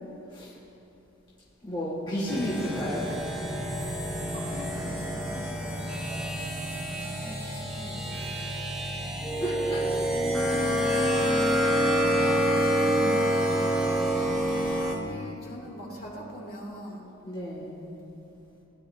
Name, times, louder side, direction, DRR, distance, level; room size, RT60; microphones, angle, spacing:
voice 1, 1.6-3.2 9.4-9.8 10.6-10.8 12.2-12.3 17.2-17.8, equal, 25° left, -8 dB, 1.8 m, -32 dB
voice 2, 2.1-2.9 4.3-6.4 6.9-8.5 10.1-10.3 14.6-14.8 15.0-17.1, equal, 45° left, -4 dB, 2.6 m, -44 dB
sound 1, 2.3-14.9, equal, 5° right, 1.2 m, -27 dB
20.0 x 11.0 x 2.7 m, 3.0 s
head